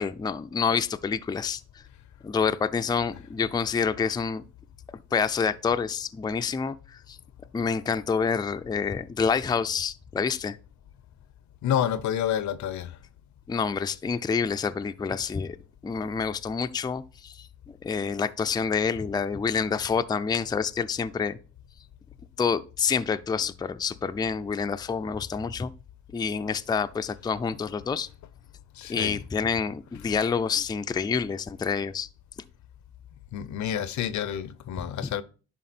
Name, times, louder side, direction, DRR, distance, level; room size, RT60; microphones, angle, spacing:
voice 1, 0.0-1.6 2.2-4.4 5.1-7.2 7.5-10.6 13.5-15.6 15.8-21.4 22.4-25.7 26.1-28.1 28.9-32.1 34.8-35.1, left 6 dB, 15° left, 0.4 m, -28 dB
voice 2, 11.6-13.0 28.8-29.2 33.3-35.2, left 10 dB, 70° left, 0.6 m, -29 dB
10.5 x 3.6 x 4.3 m
cardioid pair, 90°, 30 cm